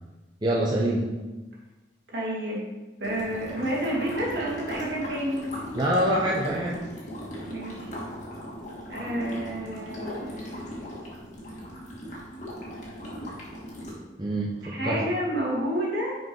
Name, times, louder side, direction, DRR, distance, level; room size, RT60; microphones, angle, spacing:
voice 1, 0.4-1.1 5.7-6.8 14.2-15.0, right 1 dB, 25° right, -4 dB, 0.9 m, -25 dB
voice 2, 2.1-2.6 3.0-5.4 7.5-7.9 8.9-10.7 14.6-16.2, equal, 65° right, -4 dB, 2.5 m, -30 dB
sound 1, 3.0-13.9, equal, 40° left, 2.0 m, -38 dB
6.2 x 5.3 x 5.4 m, 1.1 s
head